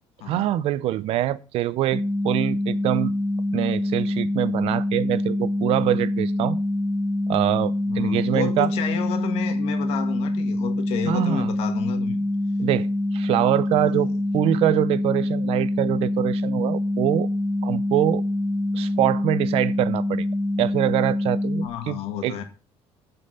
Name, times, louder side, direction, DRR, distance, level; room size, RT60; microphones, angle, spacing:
voice 1, 0.3-3.1 3.5-6.6 7.3-8.7 11.1-11.5 12.6-12.9 13.1-14.1 14.3-17.3 17.6-18.2 18.7-20.3 20.6-22.4, right 13 dB, 65° right, 0.7 m, -24 dB
sound 1, 1.9-21.7, left 1 dB, 10° right, 1.2 m, -25 dB
voice 2, 7.9-12.2 13.7-14.2 21.6-22.4, left 9 dB, 70° left, 2.0 m, -31 dB
9.8 x 5.5 x 6.6 m
cardioid pair, 155°, 11 cm